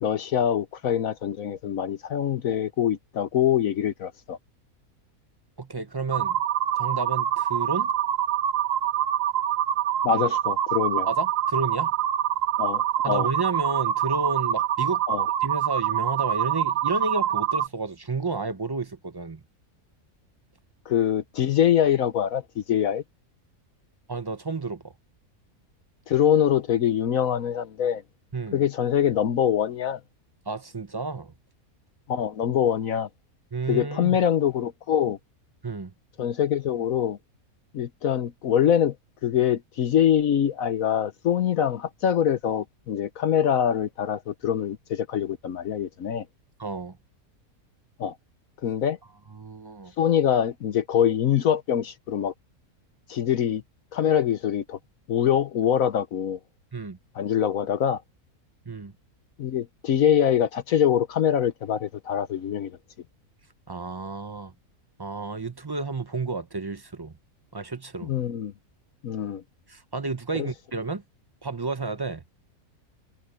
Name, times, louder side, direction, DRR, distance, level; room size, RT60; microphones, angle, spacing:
voice 1, 0.0-4.4 10.0-11.1 12.6-13.3 15.1-15.2 20.9-23.0 26.1-28.0 28.5-30.0 32.1-33.1 33.7-35.2 36.2-37.2 37.7-38.9 39.2-46.2 48.0-48.1 48.6-49.0 50.0-52.3 53.1-53.6 53.9-54.8 55.1-56.4 57.1-58.0 59.4-62.8 68.0-68.5 69.0-69.4 70.3-70.5, left 9 dB, 70° left, 1.2 m, -24 dB
voice 2, 5.6-6.4 6.7-7.9 10.1-10.3 11.1-11.9 13.0-15.0 15.4-19.4 24.1-24.9 28.3-28.6 30.5-31.3 33.5-34.2 35.6-35.9 46.6-47.0 49.3-49.9 56.7-57.0 58.7-58.9 63.7-64.5 65.0-67.1 67.5-68.1 69.7-71.0 71.4-72.2, right 3 dB, 25° right, 0.5 m, -31 dB
sound 1, 6.1-17.7, right 10 dB, 65° right, 1.1 m, -25 dB
omnidirectional pair, 1.6 m